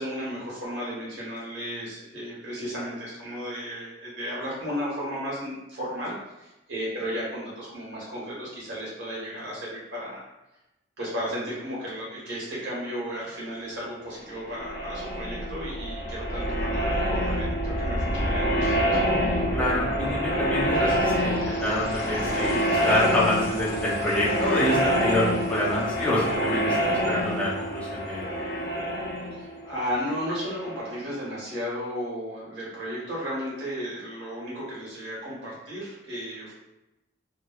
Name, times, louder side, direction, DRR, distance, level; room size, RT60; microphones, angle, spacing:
voice 1, 0.0-10.2 11.0-19.0 29.3-36.5, equal, 70° right, -6 dB, 1.2 m, -34 dB
sound 1, 14.3-30.9, equal, 55° left, 0.8 m, -26 dB
voice 2, 19.5-28.3, left 1 dB, 5° left, -9 dB, 0.6 m, -27 dB
3.0 x 2.2 x 2.3 m, 0.94 s
head